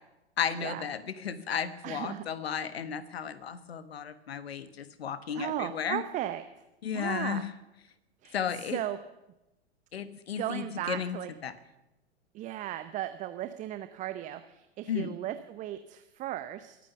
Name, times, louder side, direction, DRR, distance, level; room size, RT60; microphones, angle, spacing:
voice 1, 0.4-6.0 6.8-7.5 8.3-8.8 9.9-11.2 11.4-11.5 14.9-15.1, left 8 dB, 65° left, 14 dB, 1.3 m, -34 dB
voice 2, 1.8-2.2 5.3-6.4 6.9-7.5 8.2-9.0 10.4-11.3 12.3-16.8, right 12 dB, 25° right, 10 dB, 0.7 m, -36 dB
21.5 x 9.4 x 6.9 m, 0.96 s
figure-of-eight pair, 95°, 33 cm